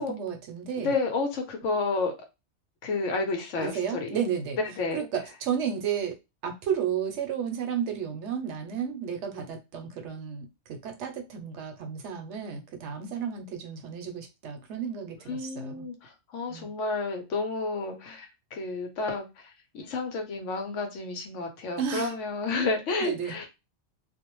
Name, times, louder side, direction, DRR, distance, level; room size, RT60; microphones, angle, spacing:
voice 1, 0.0-0.9 3.6-4.6 4.9-15.9 16.5-16.7 21.8-22.1 23.0-23.4, right 8 dB, 70° right, 0.9 m, -32 dB
voice 2, 0.8-2.1 2.8-4.1 4.6-5.1 15.3-23.5, left 3 dB, 75° left, 1.1 m, -31 dB
2.6 x 2.1 x 2.9 m
omnidirectional pair, 1.3 m